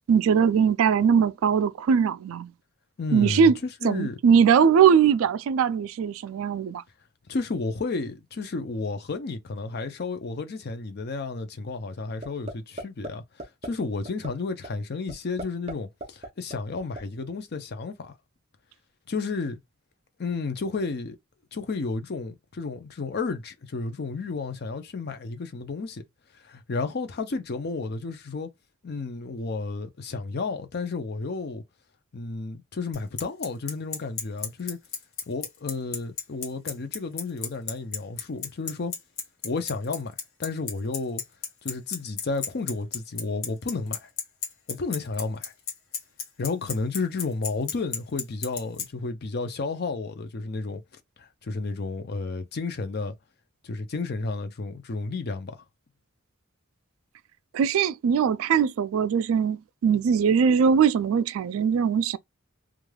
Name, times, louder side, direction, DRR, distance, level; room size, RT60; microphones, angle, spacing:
voice 1, 0.1-2.5 3.1-3.6 3.8-6.8 57.5-62.2, right 7 dB, 70° right, 0.3 m, -21 dB
voice 2, 3.0-4.2 7.3-18.1 19.1-19.6 20.2-21.2 21.5-26.0 26.4-28.5 28.8-31.6 32.1-34.8 35.3-38.9 39.4-40.1 40.4-41.2 41.6-44.1 44.7-45.5 46.4-50.8 51.2-53.1 53.6-55.6, left 3 dB, 50° left, 0.5 m, -32 dB
sound 1, 12.2-12.5 12.8-13.1 13.4-13.7 14.1-14.3 14.6-14.7 15.1-15.7 16.0-17.0, right 1 dB, 30° right, 0.6 m, -35 dB
Bicycle, 32.9-48.8, left 6 dB, 70° left, 1.0 m, -31 dB
3.2 x 2.3 x 2.3 m
head